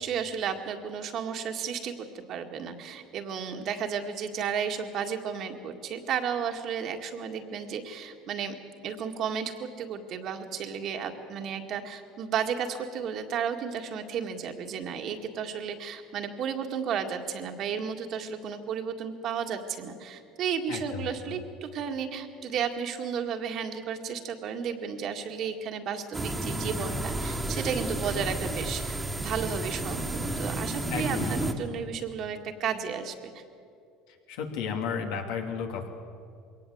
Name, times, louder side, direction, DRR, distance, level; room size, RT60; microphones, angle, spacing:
voice 1, 0.0-8.6 8.8-33.4, right 7 dB, 50° right, 4 dB, 2.0 m, -33 dB
voice 2, 20.7-21.1 30.9-31.5 34.3-35.9, left 6 dB, 75° left, 3 dB, 2.9 m, -33 dB
sound 1, 26.1-31.5, right 1 dB, 15° right, 1.8 m, -32 dB
sound 2, 26.9-31.9, left 1 dB, 50° left, 5.7 m, -44 dB
21.5 x 18.0 x 7.9 m, 2.5 s
supercardioid pair, 105°, 0 cm